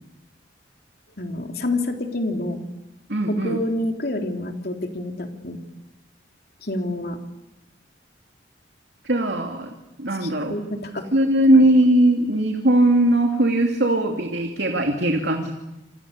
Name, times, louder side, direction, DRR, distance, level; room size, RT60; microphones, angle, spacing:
voice 1, 1.2-2.6 3.3-5.6 6.6-7.2 10.2-11.1 11.5-11.7, left 1 dB, 55° left, 3 dB, 3.6 m, -28 dB
voice 2, 3.1-3.6 9.0-9.7 10.0-10.6 11.1-15.5, right 1 dB, 70° right, 3 dB, 2.8 m, -19 dB
28.0 x 27.5 x 6.8 m, 0.94 s
head